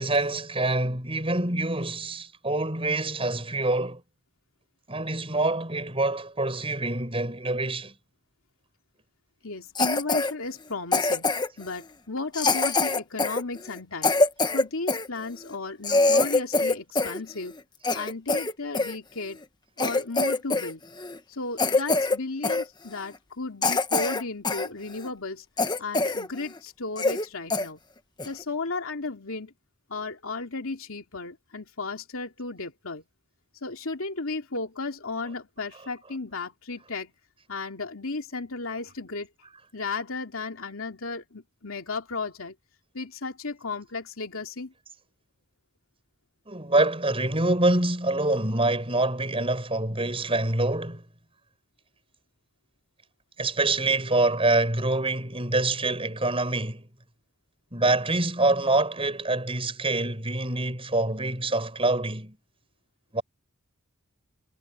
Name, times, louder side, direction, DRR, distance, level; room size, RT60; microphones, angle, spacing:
voice 1, 0.0-4.0 4.9-7.9 46.5-51.0 53.4-56.8 57.7-62.4 63.1-63.2, right 2 dB, 25° right, 7.6 m, -25 dB
voice 2, 9.4-11.2 11.6-14.1 14.5-17.6 17.9-19.4 19.8-20.8 21.3-25.4 25.8-27.8 28.3-29.5 29.9-33.0 33.6-37.1 37.5-39.3 39.7-42.5 42.9-44.7, left 3 dB, 75° left, 2.7 m, -34 dB
Cough, 9.8-10.3 10.9-11.6 12.3-15.1 15.5-15.6 15.8-17.2 17.5-18.9 19.4-19.5 19.8-20.7 21.0-21.2 21.6-22.2 22.4-22.6 23.1-23.2 23.6-24.7 25.1-25.2 25.6-26.3 26.6-26.7 27.0-27.3 27.5-27.7 28.2-28.4, left 3 dB, 20° left, 1.2 m, -24 dB
head